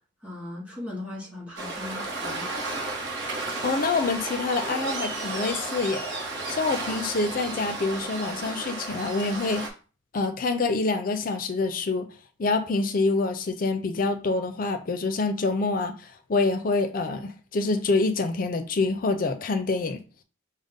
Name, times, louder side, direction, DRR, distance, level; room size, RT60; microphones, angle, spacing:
voice 1, 0.2-2.6, left 2 dB, 5° right, 1.9 m, -38 dB
Waves surf, 1.6-9.7, right 2 dB, 60° right, 0.9 m, -33 dB
voice 2, 3.6-6.1 6.5-9.6 10.1-12.1 12.4-15.9 16.3-20.0, left 3 dB, 45° left, 0.5 m, -26 dB
5.2 x 2.1 x 3.6 m
head